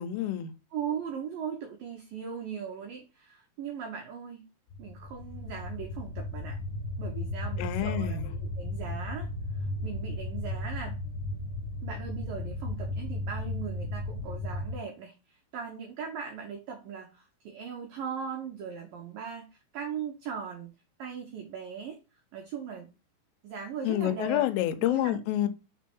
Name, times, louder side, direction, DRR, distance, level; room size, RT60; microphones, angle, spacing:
voice 1, 0.0-0.5 7.6-8.3 23.8-25.5, left 13 dB, 85° left, 3.3 m, -28 dB
voice 2, 0.7-4.5 4.8-6.6 7.0-9.3 9.8-10.9 11.8-19.5 19.7-20.7 21.0-22.0 22.3-22.9 23.4-24.5 24.8-25.2, right 7 dB, 90° right, 1.9 m, -39 dB
sound 1, 4.7-14.7, left 1 dB, 70° left, 3.1 m, -35 dB
6.5 x 4.6 x 4.3 m
omnidirectional pair, 5.7 m